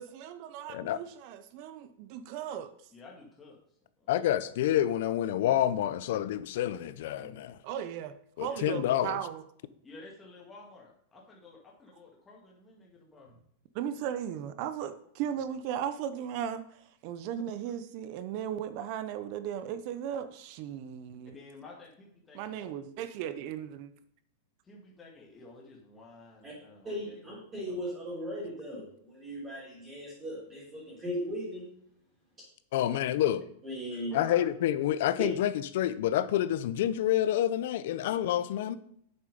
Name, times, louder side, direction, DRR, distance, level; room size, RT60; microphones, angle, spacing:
voice 1, 0.0-2.7 7.6-8.1 8.4-9.4 13.7-16.6 17.0-21.4 22.3-23.9, right 9 dB, 40° right, 12 dB, 0.7 m, -36 dB
voice 2, 2.9-3.6 4.0-4.3 8.4-8.7 9.8-13.4 21.3-22.7 24.6-27.3 27.7-27.8 32.8-33.0 34.0-34.4, left 3 dB, 15° left, -2 dB, 1.9 m, -51 dB
voice 3, 4.1-7.6 8.4-9.2 32.7-33.4 34.1-38.8, left 12 dB, 60° left, 15 dB, 0.7 m, -28 dB
voice 4, 26.8-31.7 33.6-34.1, equal, 15° right, -7 dB, 3.6 m, -38 dB
8.3 x 7.1 x 5.2 m, 0.68 s
supercardioid pair, 160°, 0 cm